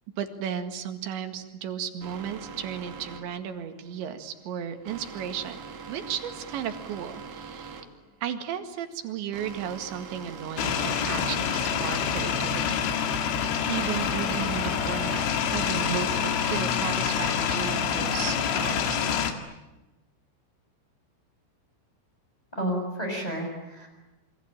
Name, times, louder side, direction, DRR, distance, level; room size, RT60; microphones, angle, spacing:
voice 1, 0.2-5.6 5.9-7.8 8.2-13.4 13.7-15.2 15.5-19.1, right 8 dB, 65° right, 7 dB, 4.0 m, -34 dB
sound 1, 2.0-17.0, right 5 dB, 50° right, 3.9 m, -43 dB
sound 2, 10.6-19.3, left 7 dB, 70° left, 4.3 m, -27 dB
voice 2, 22.5-23.9, equal, 5° left, 0 dB, 6.7 m, -31 dB
28.0 x 24.0 x 8.9 m, 1.0 s
omnidirectional pair, 5.8 m